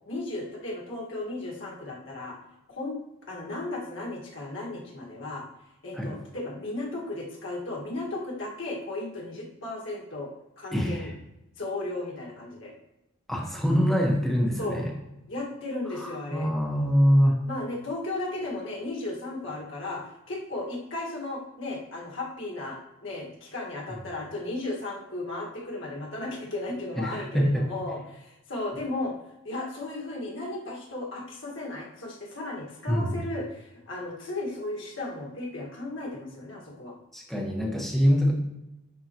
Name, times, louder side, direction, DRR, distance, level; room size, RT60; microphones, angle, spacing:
voice 1, 0.1-2.4 2.7-3.0 3.3-5.4 5.8-10.3 10.6-11.1 11.6-12.7 14.6-14.8 15.3-16.5 17.5-29.1 29.4-37.0, left 2 dB, 60° left, -3 dB, 1.8 m, -35 dB
voice 2, 10.7-11.1 13.3-14.9 16.0-17.4 27.0-27.7 32.9-33.2 37.1-38.3, equal, ahead, -2 dB, 1.2 m, -24 dB
11.0 x 4.0 x 3.0 m, 0.89 s
head